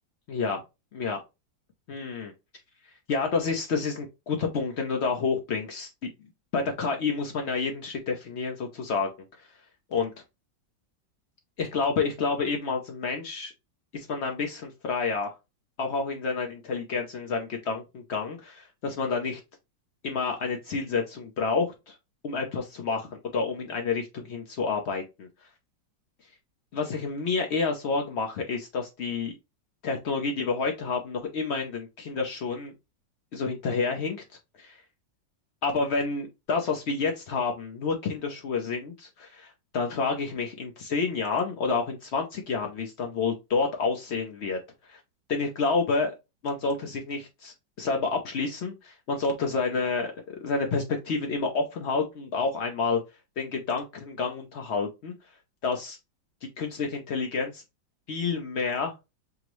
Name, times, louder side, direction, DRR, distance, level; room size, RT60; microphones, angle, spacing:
voice 1, 0.3-0.6 0.9-1.2 1.9-2.3 3.1-5.9 6.5-9.1 9.9-10.1 11.6-13.5 13.9-15.3 15.8-19.4 20.0-21.9 22.2-25.3 26.7-29.4 29.8-32.7 33.3-34.2 34.6-34.8 35.6-44.6 44.9-45.0 45.3-46.1 46.4-53.0 53.4-55.1 55.6-56.0 56.6-57.6 58.1-58.9, left 4 dB, 85° left, 2 dB, 0.5 m, -29 dB
6.0 x 2.0 x 3.0 m, 0.24 s
omnidirectional pair, 2.0 m